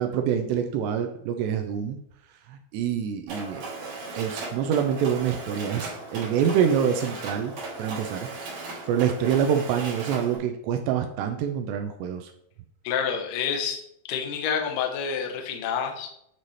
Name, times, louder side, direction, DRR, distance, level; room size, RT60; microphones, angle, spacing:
voice 1, 0.0-2.0 2.5-3.9 4.2-7.5 7.8-8.3 8.9-12.3, right 8 dB, 85° right, 6 dB, 2.6 m, -26 dB
Mechanisms, 3.3-10.4, right 3 dB, 60° right, 1.8 m, -37 dB
voice 2, 12.8-13.8 14.1-16.1, left 7 dB, 80° left, 2 dB, 1.9 m, -28 dB
8.9 x 4.1 x 3.2 m, 0.73 s
omnidirectional pair, 5.1 m